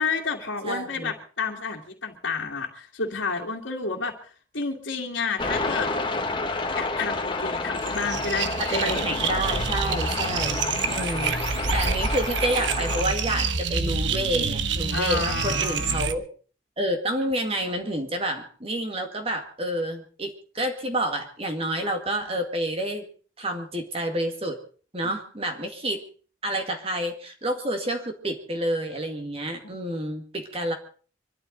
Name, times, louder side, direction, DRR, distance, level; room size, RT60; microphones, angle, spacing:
voice 1, 0.0-5.9 6.7-9.0 10.5-10.6 11.5-11.8 14.9-16.1 25.0-25.1, left 4 dB, 70° left, -4 dB, 2.3 m, -30 dB
voice 2, 0.6-1.1 8.6-10.6 10.9-16.3 16.8-23.1 23.4-24.6 24.9-26.0 26.4-30.7, right 1 dB, 30° right, 4 dB, 2.1 m, -29 dB
sound 1, 5.4-13.0, left 3 dB, 25° left, 1.3 m, -30 dB
sound 2, 7.8-16.1, right 5 dB, 65° right, 1.3 m, -27 dB
25.5 x 13.0 x 4.0 m, 0.41 s
head